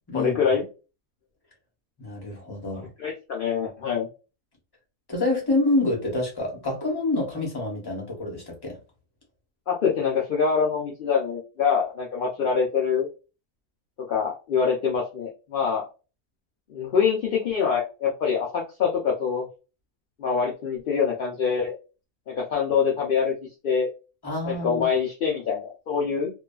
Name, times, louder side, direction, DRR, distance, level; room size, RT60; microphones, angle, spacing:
voice 1, 0.1-0.6 3.0-4.1 9.7-13.1 14.1-15.8 16.7-19.4 20.2-21.7 22.3-23.3 23.6-23.9 24.5-26.3, left 6 dB, 65° left, 0.5 m, -25 dB
voice 2, 2.0-2.9 5.1-8.8 24.2-24.9, left 2 dB, 20° left, 0.8 m, -27 dB
2.6 x 2.3 x 2.2 m
omnidirectional pair, 1.6 m